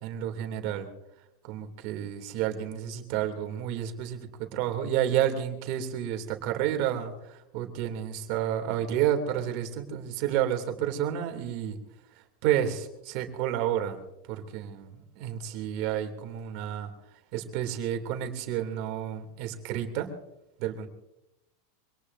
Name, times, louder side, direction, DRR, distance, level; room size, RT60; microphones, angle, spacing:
voice 1, 0.0-0.9 1.5-11.8 12.4-14.0 14.3-16.9 17.3-20.1 20.6-20.9, right 10 dB, 55° right, 5 dB, 2.9 m, -30 dB
25.0 x 18.5 x 2.7 m, 0.88 s
supercardioid pair, 140°, 0 cm